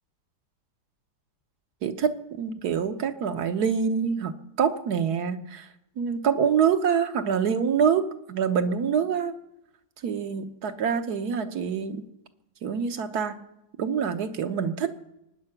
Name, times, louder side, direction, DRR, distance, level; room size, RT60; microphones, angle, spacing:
voice 1, 1.8-5.7 6.0-9.3 10.0-12.1 12.6-13.4 13.8-14.9, right 7 dB, 75° right, 8 dB, 1.6 m, -26 dB
23.5 x 9.8 x 5.8 m, 0.88 s
omnidirectional pair, 1.7 m